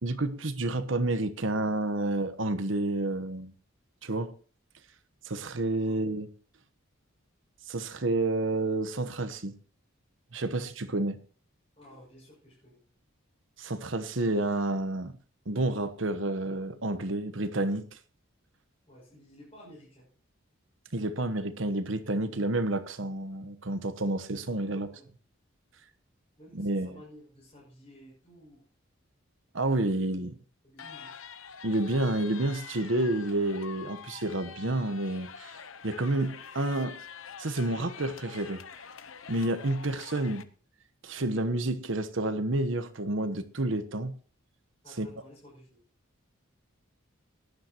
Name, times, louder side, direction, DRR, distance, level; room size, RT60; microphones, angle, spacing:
voice 1, 0.0-3.5 4.0-4.3 5.2-6.3 7.7-9.6 10.3-11.2 13.6-15.1 15.5-17.9 20.9-24.9 26.5-26.9 29.5-30.3 31.6-35.5 35.8-37.0 37.4-38.6 39.3-40.5 41.0-44.1 45.0-45.1, right 2 dB, 65° right, 1.1 m, -29 dB
voice 2, 5.7-6.0 11.8-12.8 18.9-20.1 24.5-25.1 26.4-28.6 29.8-30.3 30.6-31.3 44.8-45.8, equal, 30° left, 6.6 m, -53 dB
sound 1, 30.8-40.4, left 7 dB, 80° left, 0.9 m, -46 dB
18.0 x 11.0 x 2.9 m
head